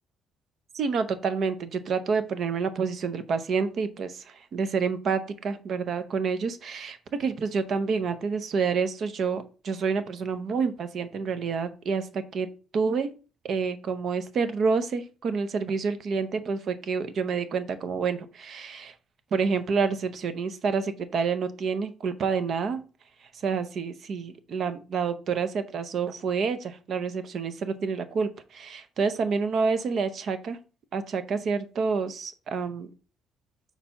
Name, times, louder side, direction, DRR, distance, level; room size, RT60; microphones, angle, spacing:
voice 1, 0.7-12.5 12.7-13.1 13.4-18.9 19.3-22.8 23.4-30.6 30.9-32.9, right 5 dB, 40° right, 11 dB, 0.6 m, -28 dB
4.4 x 4.1 x 5.6 m, 0.35 s
cardioid pair, 175°, 0 cm